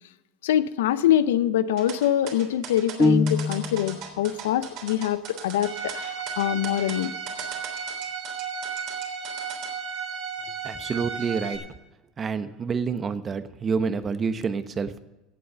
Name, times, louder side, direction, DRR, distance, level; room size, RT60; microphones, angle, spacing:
voice 1, 0.4-7.1, left 11 dB, 80° left, 15 dB, 0.6 m, -24 dB
sound 1, 1.8-9.7, right 7 dB, 65° right, 3.4 m, -39 dB
sound 2, 3.0-4.0, left 2 dB, 10° left, 0.4 m, -23 dB
Bowed string instrument, 5.6-11.6, right 6 dB, 85° right, 4.0 m, -34 dB
voice 2, 10.6-11.6 12.2-15.0, right 5 dB, 30° right, 11 dB, 1.1 m, -28 dB
17.0 x 7.7 x 5.7 m, 1.0 s
hypercardioid pair, 85°, 0 cm